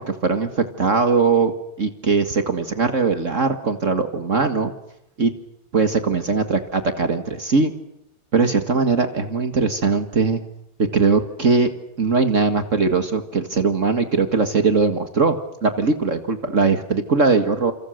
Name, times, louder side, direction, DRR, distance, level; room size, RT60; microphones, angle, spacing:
voice 1, 0.0-1.5 1.8-4.7 5.2-5.3 5.7-7.7 8.3-10.4 10.9-11.7 12.0-17.7, right 4 dB, 65° right, 8 dB, 0.7 m, -20 dB
28.5 x 27.5 x 6.5 m, 0.83 s
omnidirectional pair, 4.4 m